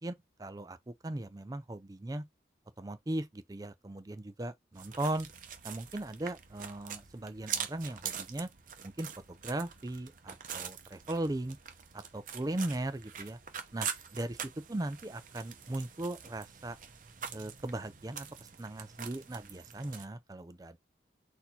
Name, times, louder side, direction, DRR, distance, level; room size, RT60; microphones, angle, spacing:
voice 1, 0.0-2.2 2.8-5.3 5.6-8.5 8.8-11.6 11.9-13.4 13.7-13.9 14.2-14.4 14.7-16.8 17.3-20.8, right 1 dB, 20° right, 0.4 m, -38 dB
sound 1, 4.7-20.1, right 8 dB, 45° right, 0.7 m, -44 dB
4.2 x 2.7 x 4.3 m
head